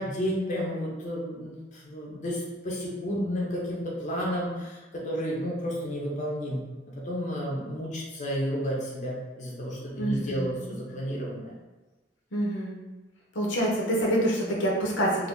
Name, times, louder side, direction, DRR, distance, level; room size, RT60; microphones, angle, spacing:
voice 1, 0.0-11.6, equal, 40° left, -4 dB, 0.6 m, -32 dB
voice 2, 10.0-10.5 10.9-11.0 12.3-12.8 13.3-15.3, right 1 dB, 75° left, -3 dB, 0.7 m, -26 dB
2.6 x 2.5 x 3.5 m, 1.2 s
head